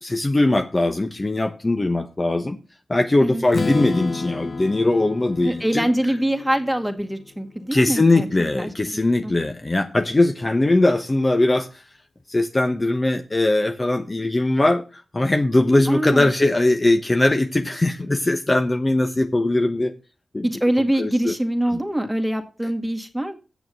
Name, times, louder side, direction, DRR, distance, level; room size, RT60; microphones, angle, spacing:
voice 1, 0.0-2.6 2.9-5.9 7.7-11.8 12.3-19.9 20.3-20.5 21.0-21.3 21.7-21.8, left 2 dB, 35° left, 6 dB, 1.0 m, -20 dB
Strum, 3.5-7.4, left 4 dB, 60° left, 1.0 m, -31 dB
voice 2, 5.4-8.3 8.6-9.3 15.9-16.3 20.4-23.3, right 1 dB, 5° right, 5 dB, 2.1 m, -24 dB
8.2 x 6.9 x 6.3 m, 0.34 s
cardioid pair, 40°, 0 cm